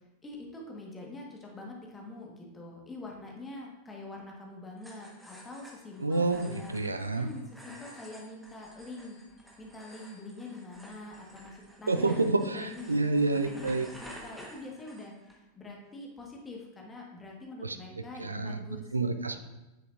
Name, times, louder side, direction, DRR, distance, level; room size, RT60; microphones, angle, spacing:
voice 1, 0.0-6.7 7.1-9.2 9.6-12.1 12.4-13.0 13.3-18.9 19.3-19.4, left 2 dB, 15° left, -1 dB, 1.5 m, -45 dB
sound 1, 4.8-15.4, equal, ahead, 1.3 m, -52 dB
voice 2, 6.0-7.3 11.9-13.9 17.6-17.8 18.2-18.6 18.9-19.4, right 3 dB, 80° right, 8 dB, 0.4 m, -28 dB
8.9 x 6.8 x 2.5 m, 1.0 s
figure-of-eight pair, 90°, 0 cm